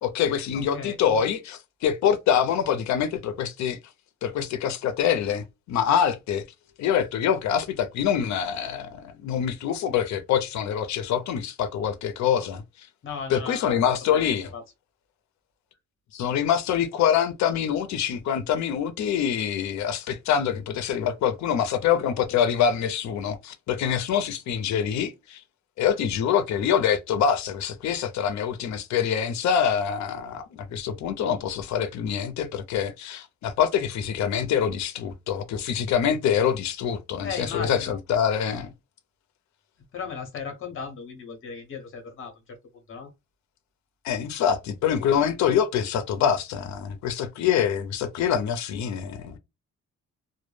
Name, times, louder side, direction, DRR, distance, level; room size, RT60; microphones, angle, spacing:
voice 1, 0.0-3.8 4.2-6.4 6.8-12.6 13.3-14.5 16.1-25.4 25.8-38.7 44.0-49.4, left 8 dB, 70° left, 0.5 m, -25 dB
voice 2, 0.5-1.2 13.0-13.8 14.1-14.6 37.2-38.0 39.9-42.6 42.9-43.1, left 6 dB, 45° left, 0.8 m, -36 dB
2.1 x 2.1 x 3.1 m
wide cardioid pair, 170°, 29 cm